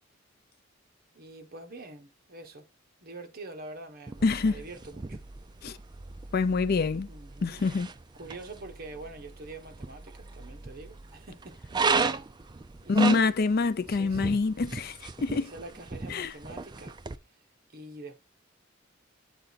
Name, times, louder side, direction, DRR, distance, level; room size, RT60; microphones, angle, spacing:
voice 1, 1.1-2.6 3.0-5.2 7.1-7.6 8.1-11.6 12.8-13.3 13.9-14.4 15.3-17.0 17.7-18.2, right 2 dB, 50° right, 1.2 m, -45 dB
sound 1, 4.1-17.2, right 4 dB, 20° right, 0.4 m, -35 dB
voice 2, 4.2-4.6 5.6-5.8 6.3-7.1 7.4-7.9 12.9-15.5 16.1-16.3, left 4 dB, 50° left, 0.4 m, -26 dB
8.0 x 4.2 x 4.0 m
head